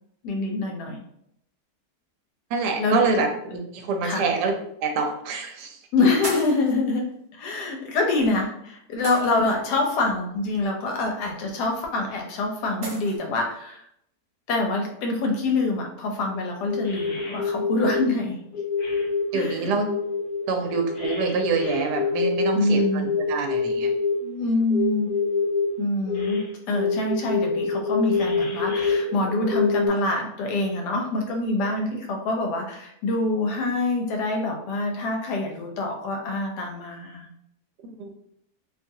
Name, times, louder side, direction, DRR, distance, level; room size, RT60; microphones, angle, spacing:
voice 1, 0.2-1.0 2.8-3.0 4.0-4.3 5.9-7.1 7.3-13.8 14.5-18.4 19.3-19.7 22.5-23.1 24.2-25.1 25.8-37.3, left 2 dB, 80° left, 2 dB, 1.2 m, -25 dB
voice 2, 2.5-4.5 4.8-5.8 19.3-19.9 20.5-23.0 23.3-23.9 37.8-38.1, right 4 dB, 80° right, 4 dB, 1.2 m, -26 dB
sound 1, 4.3-4.4 5.4-5.6 6.2-6.7 8.1-8.3 9.0-9.7 11.6-11.7 12.8-13.2, right 1 dB, 55° right, 0.6 m, -35 dB
sound 2, 16.2-16.4 16.6-18.0 18.5-19.5 19.8-24.1 24.7-25.7 26.1-26.4 26.7-29.9, left 5 dB, 65° left, 1.3 m, -26 dB
2.9 x 2.4 x 2.6 m, 0.74 s
omnidirectional pair, 1.7 m